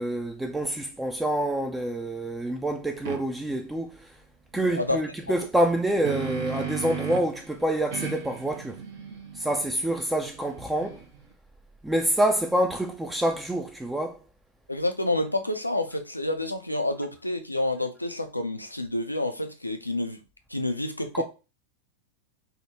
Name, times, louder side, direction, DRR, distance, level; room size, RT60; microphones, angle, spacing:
voice 1, 0.0-4.1 4.5-8.8 9.3-11.0 11.8-14.2 21.1-21.2, right 1 dB, 5° right, 0.3 m, -27 dB
sound 1, 3.1-3.2 5.6-7.4 7.9-11.2, right 7 dB, 55° right, 0.6 m, -36 dB
voice 2, 4.5-5.0 5.4-5.5 14.7-20.2 20.5-21.2, left 1 dB, 85° left, 0.4 m, -29 dB
3.5 x 2.1 x 2.7 m
figure-of-eight pair, 90°, 0 cm